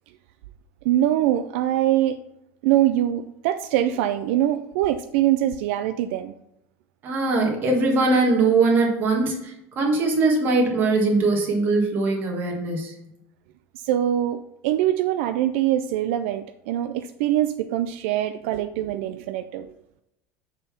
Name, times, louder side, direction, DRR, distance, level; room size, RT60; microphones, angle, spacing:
voice 1, 0.8-2.2 2.6-6.3 13.7-19.7, right 12 dB, 80° right, 9 dB, 0.4 m, -23 dB
voice 2, 7.0-12.9, right 3 dB, 30° right, 0 dB, 1.5 m, -21 dB
6.7 x 3.7 x 5.8 m, 0.81 s
cardioid pair, 180°, 7 cm